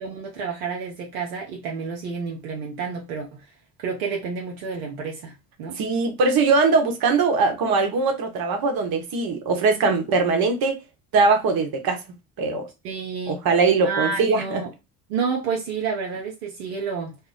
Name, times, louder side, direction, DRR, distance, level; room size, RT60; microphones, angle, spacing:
voice 1, 0.0-3.5 3.8-5.8 12.8-13.4 13.8-14.7 15.1-17.2, right 5 dB, 85° right, 0.7 m, -30 dB
voice 2, 5.8-10.8 11.1-12.0 12.4-12.7 13.3-14.6, right 4 dB, 60° right, 1.0 m, -21 dB
2.1 x 2.1 x 3.8 m
hypercardioid pair, 50°, 41 cm